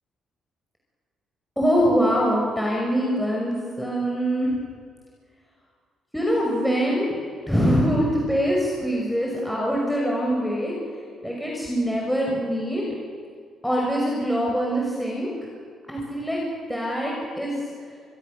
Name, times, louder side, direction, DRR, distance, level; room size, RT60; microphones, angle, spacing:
voice 1, 1.6-4.5 6.1-7.2 7.5-10.8 11.2-12.8 13.6-15.3 15.9-16.4 16.7-17.5, equal, 5° left, -3 dB, 5.9 m, -23 dB
26.5 x 21.5 x 6.9 m, 2.1 s
cardioid pair, 90°, 0 cm